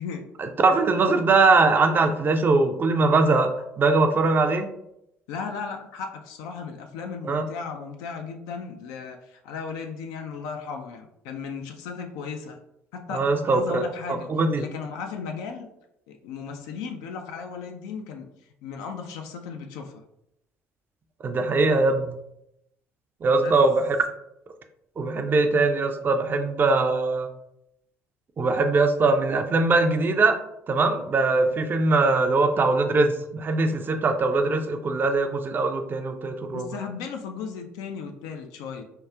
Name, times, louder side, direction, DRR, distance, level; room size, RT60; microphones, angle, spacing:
voice 1, 0.4-4.7 7.2-7.5 13.1-14.7 21.2-22.2 23.2-24.0 25.0-27.3 28.4-30.4 30.7-36.7, right 3 dB, 30° right, 6 dB, 0.4 m, -21 dB
voice 2, 5.3-12.6 12.9-15.7 16.1-18.3 18.6-20.0 23.3-23.6 36.5-38.8, left 5 dB, 60° left, 4 dB, 0.3 m, -36 dB
4.5 x 2.3 x 2.3 m, 0.81 s
figure-of-eight pair, 55°, 7 cm